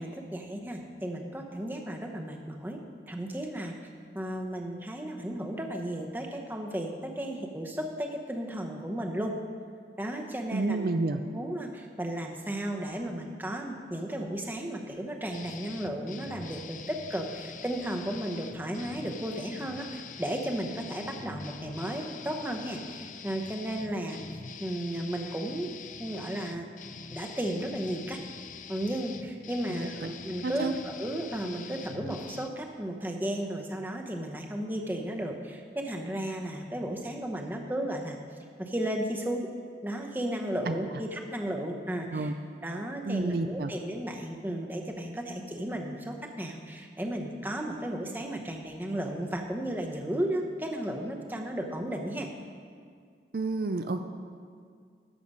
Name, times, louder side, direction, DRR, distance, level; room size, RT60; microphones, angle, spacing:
voice 1, 0.0-2.8 3.1-3.7 4.1-9.4 10.0-11.0 11.3-24.2 24.6-25.7 26.0-26.6 27.1-28.2 28.7-38.2 38.6-39.5 39.8-42.3 42.6-52.3, right 1 dB, 10° right, 2 dB, 0.8 m, -34 dB
voice 2, 10.5-11.2 29.8-30.1 30.4-30.7 40.7-40.8 42.1-42.3 43.1-43.7 53.3-54.0, right 3 dB, 55° right, 8 dB, 0.4 m, -30 dB
sound 1, 15.3-32.5, left 5 dB, 45° left, 0.4 m, -45 dB
13.5 x 6.7 x 5.4 m, 2.1 s
head